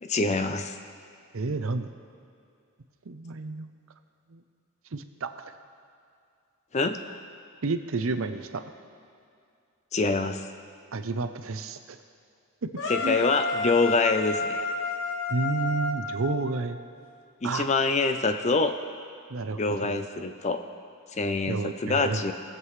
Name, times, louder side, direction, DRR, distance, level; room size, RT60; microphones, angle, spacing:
voice 1, 0.0-0.8 6.7-7.0 9.9-10.4 12.9-14.7 17.4-18.7 19.6-20.6 21.1-22.3, left 3 dB, 30° left, 8 dB, 0.5 m, -25 dB
voice 2, 1.3-1.9 3.1-3.7 4.3-4.4 4.9-5.6 7.6-8.6 10.9-12.0 13.0-13.2 15.3-16.8 17.4-17.7 19.3-20.0 21.5-22.2, right 3 dB, 65° right, 8 dB, 0.6 m, -31 dB
sound 1, 12.8-16.9, left 3 dB, 55° left, 1.0 m, -31 dB
22.0 x 7.6 x 3.2 m, 2.4 s
head